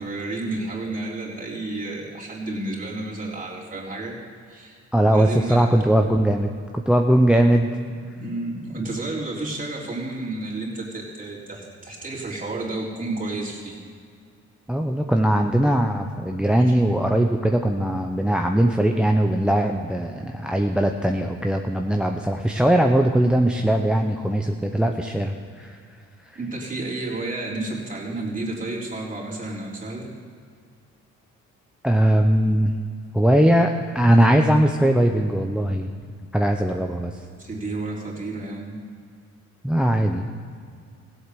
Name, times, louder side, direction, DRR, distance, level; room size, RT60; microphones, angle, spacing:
voice 1, 0.0-4.2 4.5-4.8 5.1-5.7 7.9-13.8 14.8-14.9 16.5-16.8 26.4-30.1 37.4-38.8, right 2 dB, 25° right, -4 dB, 3.7 m, -31 dB
voice 2, 4.9-6.5 6.9-7.7 14.7-25.8 31.8-32.7 33.1-35.9 36.3-37.2 39.6-40.2, right 1 dB, 5° right, 4 dB, 0.7 m, -20 dB
16.0 x 8.1 x 6.9 m, 2.2 s
cardioid pair, 90°, 30 cm